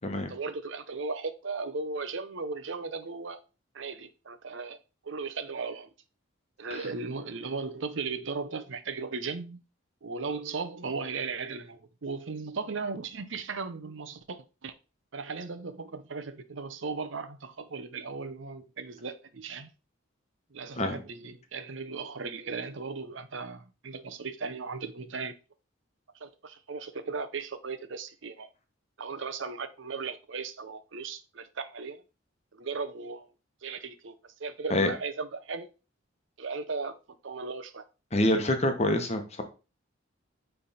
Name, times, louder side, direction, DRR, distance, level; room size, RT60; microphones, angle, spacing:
voice 1, 0.1-3.4 3.7-4.8 5.0-5.9 6.6-9.6 10.0-14.7 15.1-19.7 20.5-25.3 26.2-28.5 29.0-32.0 32.5-33.3 33.6-35.7 36.4-36.9 37.2-37.8, right 4 dB, 65° right, 0.7 m, -37 dB
voice 2, 38.1-39.4, left 1 dB, 30° left, 1.1 m, -26 dB
9.3 x 3.4 x 4.2 m
head